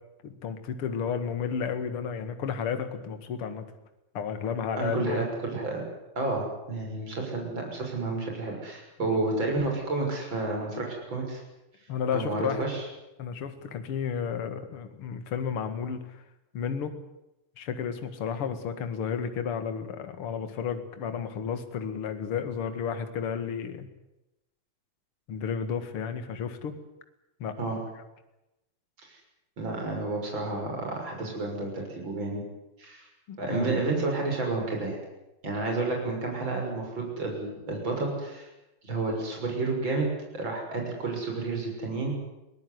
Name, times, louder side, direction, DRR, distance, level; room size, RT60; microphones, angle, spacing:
voice 1, 0.2-3.7 4.1-5.2 9.0-9.2 11.9-12.7 13.2-16.2 16.5-16.9 17.6-23.9 25.3-26.7 27.4-27.6 33.3-33.7, left 7 dB, 45° left, 9 dB, 2.5 m, -32 dB
voice 2, 4.8-5.8 6.2-11.4 12.1-12.8 27.6-27.8 29.0-29.1 29.6-32.4 32.8-33.1 33.4-35.0 35.4-38.5 38.8-40.1 40.3-42.2, right 3 dB, 35° right, 1 dB, 7.0 m, -30 dB
23.0 x 18.5 x 9.7 m, 0.93 s
omnidirectional pair, 3.7 m